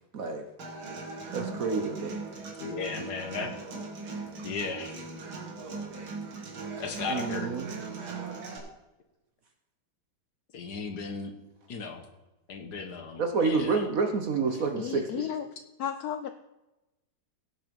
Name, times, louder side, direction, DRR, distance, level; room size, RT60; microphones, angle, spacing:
voice 1, 0.1-0.5 1.3-2.2 7.1-7.7 13.2-15.3, right 4 dB, 50° right, 5 dB, 1.2 m, -29 dB
Human voice / Acoustic guitar, 0.6-8.6, right 4 dB, 75° right, 2.6 m, -39 dB
voice 2, 2.6-3.5 4.4-5.0 6.8-7.5 10.5-11.3 11.7-12.0 12.5-13.7, left 4 dB, 55° left, 6 dB, 1.6 m, -35 dB
voice 3, 14.8-15.5 15.8-16.3, left 9 dB, 80° left, 9 dB, 0.8 m, -33 dB
16.0 x 5.8 x 5.3 m, 0.99 s
omnidirectional pair, 2.2 m